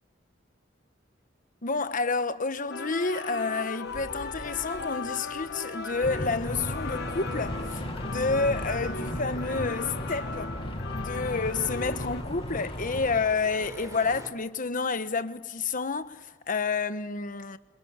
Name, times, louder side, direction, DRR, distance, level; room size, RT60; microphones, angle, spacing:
voice 1, 1.6-10.5 10.9-17.6, left 4 dB, 45° left, 1.2 m, -29 dB
sound 1, 2.7-12.2, left 3 dB, 60° left, 1.5 m, -37 dB
sound 2, 3.8-14.3, equal, 20° right, 3.3 m, -44 dB
sound 3, 6.0-13.3, left 1 dB, 30° left, 1.7 m, -36 dB
27.5 x 26.5 x 8.1 m
head